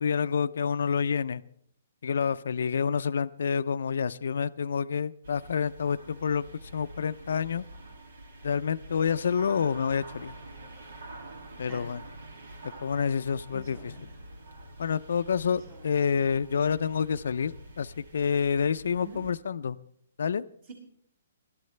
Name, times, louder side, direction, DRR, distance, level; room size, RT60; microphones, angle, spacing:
voice 1, 0.0-1.4 2.0-6.4 6.7-7.6 8.4-10.3 11.6-12.0 12.8-13.9 14.8-19.8 20.2-20.4, left 6 dB, 75° left, 13 dB, 0.5 m, -28 dB
sound 1, 5.2-19.3, right 1 dB, 80° right, 2.4 m, -47 dB
voice 2, 13.5-14.4 15.5-16.3 19.0-19.2 20.6-20.7, right 2 dB, 45° right, -1 dB, 6.4 m, -48 dB
21.5 x 12.5 x 3.3 m, 0.68 s
hypercardioid pair, 160°, 0 cm